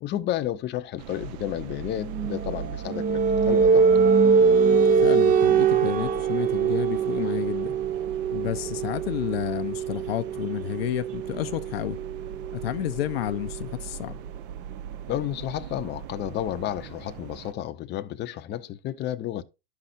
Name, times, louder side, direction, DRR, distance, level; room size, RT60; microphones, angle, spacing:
voice 1, 0.0-3.8 15.1-19.4, left 12 dB, 35° left, 0.7 m, -31 dB
sound 1, 1.0-17.5, right 9 dB, 60° right, 0.9 m, -40 dB
sound 2, 2.1-13.6, right 5 dB, 25° right, 0.6 m, -23 dB
voice 2, 5.0-7.7 8.3-12.0 12.5-14.2, left 14 dB, 75° left, 0.6 m, -30 dB
13.0 x 5.7 x 2.6 m
hypercardioid pair, 95°, 30 cm